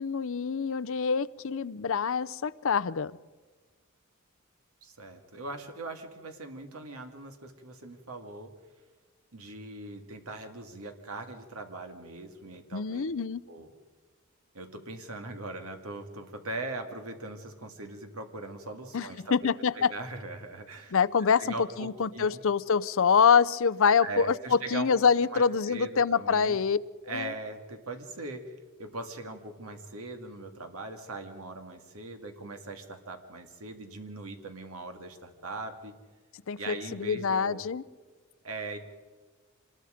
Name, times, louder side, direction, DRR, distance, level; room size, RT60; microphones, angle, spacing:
voice 1, 0.0-3.1 12.7-13.4 18.9-19.9 20.9-26.8 27.1-27.3 36.5-37.8, left 6 dB, 65° left, 14 dB, 0.6 m, -26 dB
voice 2, 4.8-8.5 9.3-13.1 13.5-13.7 14.5-19.3 19.7-20.9 21.4-22.4 24.0-24.9 25.3-26.6 27.1-28.5 28.8-35.9 36.6-37.6 38.4-38.8, right 2 dB, 75° right, 5 dB, 2.1 m, -40 dB
26.0 x 20.5 x 5.1 m, 1.4 s
head